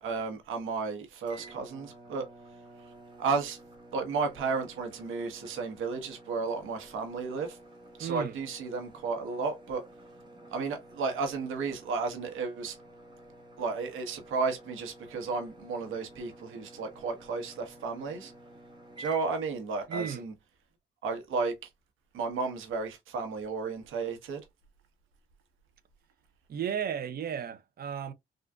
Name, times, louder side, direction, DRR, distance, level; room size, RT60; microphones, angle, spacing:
voice 1, 0.0-2.2 3.2-3.6 3.9-7.6 8.0-9.8 10.5-12.8 13.6-18.3 19.0-20.3 21.0-21.7 22.1-24.4, right 4 dB, 85° right, 1.1 m, -33 dB
sound 1, 1.3-19.5 19.9-20.2, right 2 dB, 20° right, 1.2 m, -51 dB
voice 2, 8.0-8.4 19.9-20.2 26.5-28.1, right 8 dB, 50° right, 0.6 m, -34 dB
3.7 x 2.4 x 2.2 m
cardioid pair, 90°, 20 cm